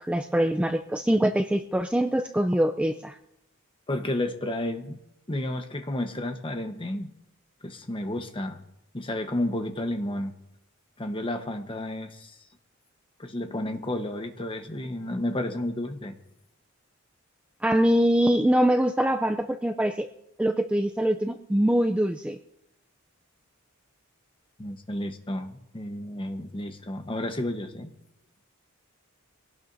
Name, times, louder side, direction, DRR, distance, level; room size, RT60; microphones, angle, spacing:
voice 1, 0.0-3.1 17.6-20.1 20.4-22.4, right 1 dB, 5° right, 5 dB, 0.4 m, -23 dB
voice 2, 3.9-5.0 5.3-7.1 7.6-8.6 8.9-10.3 11.0-12.4 13.2-16.2 24.6-27.9, left 1 dB, 25° left, 6 dB, 1.1 m, -31 dB
23.5 x 17.5 x 2.7 m, 0.86 s
head